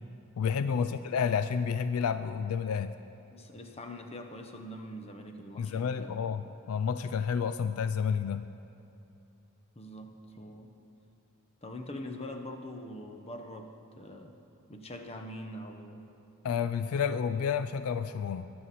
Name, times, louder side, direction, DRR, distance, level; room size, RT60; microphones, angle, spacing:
voice 1, 0.4-2.9 5.6-8.5 16.4-18.5, left 6 dB, 75° left, 12 dB, 0.3 m, -30 dB
voice 2, 3.3-6.5 9.8-10.7 11.6-13.7 14.0-14.3 14.7-16.0, left 1 dB, 30° left, 5 dB, 0.9 m, -43 dB
22.0 x 7.7 x 4.2 m, 2.8 s
head